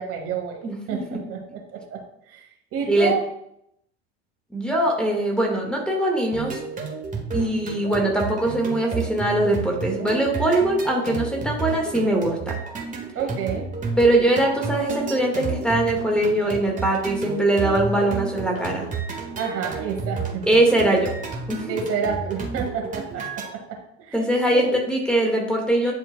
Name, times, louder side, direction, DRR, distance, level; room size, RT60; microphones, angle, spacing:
voice 1, 0.0-3.3 13.2-13.7 19.4-20.4 21.7-23.3 23.7-24.2 24.5-24.8, right 6 dB, 40° right, 1 dB, 1.7 m, -29 dB
voice 2, 0.6-1.2 2.9-3.1 4.5-6.6 7.3-12.6 14.0-18.9 20.5-21.1 21.5-21.8 24.1-25.9, right 1 dB, 5° left, 0 dB, 1.7 m, -22 dB
sound 1, 6.3-23.5, right 4 dB, 20° right, 1.7 m, -31 dB
10.5 x 4.5 x 2.2 m, 0.75 s
figure-of-eight pair, 75°, 34 cm